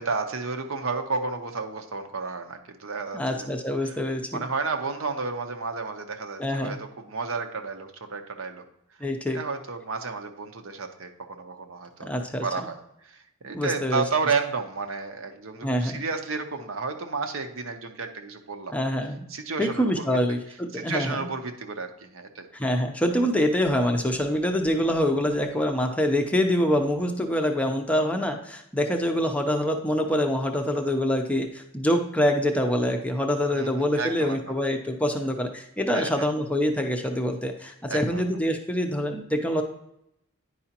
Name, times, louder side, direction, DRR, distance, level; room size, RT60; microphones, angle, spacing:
voice 1, 0.0-3.5 3.8-4.0 4.3-8.6 9.3-12.1 12.4-12.8 13.0-18.7 19.3-20.2 20.7-22.5 33.5-33.7 34.0-34.5 35.9-36.3 37.9-38.2, right 4 dB, 70° right, 6 dB, 0.8 m, -32 dB
voice 2, 3.1-4.4 6.4-6.8 9.0-9.4 12.0-12.4 13.5-14.0 15.6-16.0 18.7-19.2 19.6-21.3 22.5-39.6, equal, 5° left, 4 dB, 0.5 m, -25 dB
10.0 x 4.9 x 2.8 m, 0.79 s
head